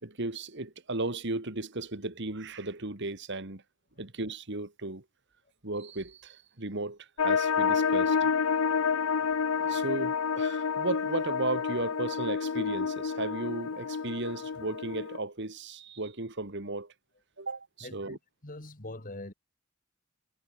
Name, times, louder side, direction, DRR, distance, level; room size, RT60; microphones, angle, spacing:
voice 1, 0.0-3.6 4.0-5.0 5.6-8.3 9.6-16.9 17.4-18.2, right 2 dB, 55° right, 2.4 m, -35 dB
sound 1, 7.2-15.2, left 6 dB, 90° left, 0.6 m, -29 dB
voice 2, 17.8-19.3, left 2 dB, 40° left, 2.6 m, -43 dB
head